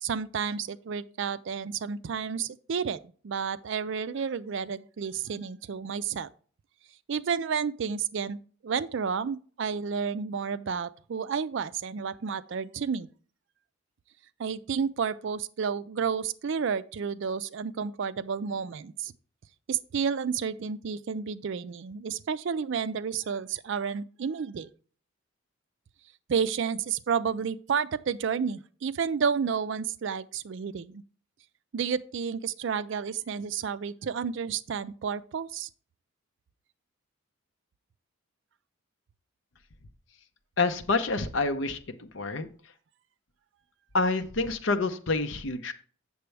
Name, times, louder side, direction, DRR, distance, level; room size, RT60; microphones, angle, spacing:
voice 1, 0.0-6.3 7.1-13.1 14.4-19.1 19.7-24.7 26.3-31.0 31.7-35.7, right 6 dB, 60° right, 0.4 m, -31 dB
voice 2, 40.6-42.5 43.9-45.7, left 3 dB, 60° left, 0.7 m, -28 dB
8.0 x 6.8 x 3.3 m
head